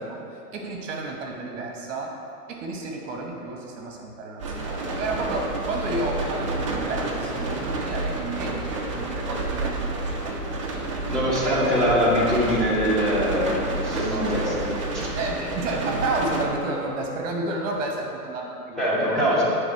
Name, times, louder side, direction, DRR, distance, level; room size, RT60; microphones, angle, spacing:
voice 1, 0.0-2.1 2.5-11.0 15.1-19.4, right 2 dB, 50° right, 0 dB, 1.1 m, -31 dB
sound 1, 4.4-16.5, right 2 dB, 25° right, 0.3 m, -29 dB
voice 2, 11.1-15.1 18.8-19.4, equal, ahead, -10 dB, 1.1 m, -23 dB
9.2 x 3.5 x 4.3 m, 2.6 s
hypercardioid pair, 125°, 47 cm